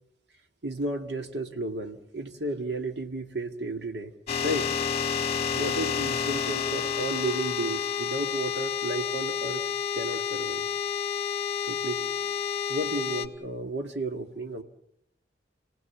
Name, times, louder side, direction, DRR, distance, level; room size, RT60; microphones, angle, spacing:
voice 1, 0.6-4.1 4.4-4.7 5.5-9.6 10.0-10.7 11.7-12.0 12.7-14.6, right 2 dB, 70° right, 6 dB, 2.0 m, -33 dB
sound 1, 4.3-13.3, left 7 dB, 40° left, 1.6 m, -30 dB
29.5 x 18.5 x 7.2 m, 0.78 s
head